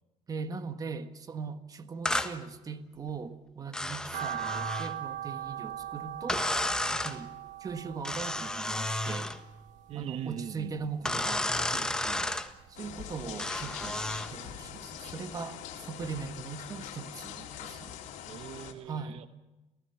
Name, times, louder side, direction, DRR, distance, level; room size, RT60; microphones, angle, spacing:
voice 1, 0.3-6.5 6.9-7.3 7.6-9.3 9.9-12.3 12.7-18.0 18.8-19.2, right 5 dB, 30° right, 10 dB, 1.5 m, -40 dB
sound 1, 2.1-2.3 3.7-4.9 6.3-7.2 8.0-9.4 11.1-12.5 13.4-14.3, left 1 dB, 5° left, 1.4 m, -32 dB
sound 2, 4.1-10.4 10.8-12.0 12.3-13.7 14.1-14.2 14.7-14.8 15.0-15.1, right 10 dB, 80° right, 1.7 m, -40 dB
voice 2, 9.9-11.1 18.3-19.3, right 10 dB, 55° right, 10 dB, 1.2 m, -41 dB
sound 3, 12.7-18.7, left 10 dB, 85° left, 3.2 m, -43 dB
29.0 x 16.5 x 7.1 m, 1.1 s
cardioid pair, 145°, 12 cm